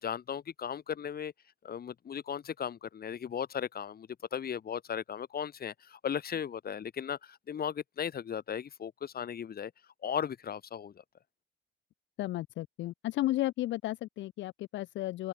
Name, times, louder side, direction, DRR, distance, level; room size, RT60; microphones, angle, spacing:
voice 1, 0.0-1.3 1.6-9.7 10.0-11.0, left 8 dB, 55° left, 2.4 m, -36 dB
voice 2, 12.2-15.3, left 15 dB, 80° left, 0.4 m, -33 dB
open air
cardioid pair, 100°, 19 cm